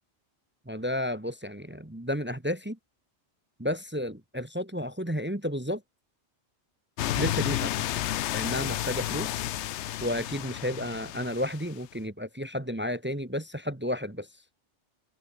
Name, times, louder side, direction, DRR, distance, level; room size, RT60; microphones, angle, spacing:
voice 1, 0.7-2.8 3.6-5.8 7.1-7.9 8.3-9.4 10.0-14.3, equal, 10° right, 1.3 m, -32 dB
sound 1, 7.0-11.8, left 13 dB, 80° left, 0.9 m, -31 dB
open air
omnidirectional pair, 1.2 m